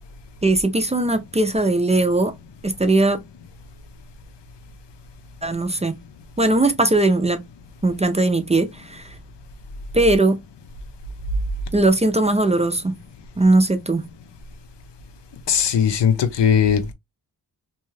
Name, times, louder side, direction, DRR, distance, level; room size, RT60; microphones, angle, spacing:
voice 1, 0.4-2.3 2.6-3.2 5.4-5.9 6.4-7.4 7.8-9.1 9.9-10.4 11.7-13.0 13.4-14.0, right 2 dB, 20° right, 0.3 m, -19 dB
voice 2, 15.5-16.9, left 8 dB, 85° left, 0.7 m, -18 dB
2.6 x 2.2 x 3.0 m
wide cardioid pair, 145°, 41 cm